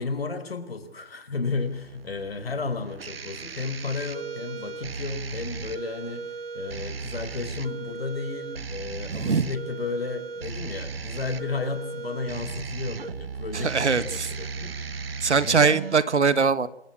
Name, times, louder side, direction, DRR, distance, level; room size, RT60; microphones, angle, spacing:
voice 1, 0.0-14.7 15.4-15.8, left 4 dB, 60° left, 10 dB, 4.4 m, -33 dB
sound 1, 1.4-15.9, right 5 dB, 55° right, 1.1 m, -36 dB
voice 2, 9.1-9.4 13.5-14.3 15.2-16.7, right 5 dB, 80° right, 15 dB, 1.5 m, -22 dB
27.0 x 15.0 x 8.6 m, 0.81 s
hypercardioid pair, 165°, 34 cm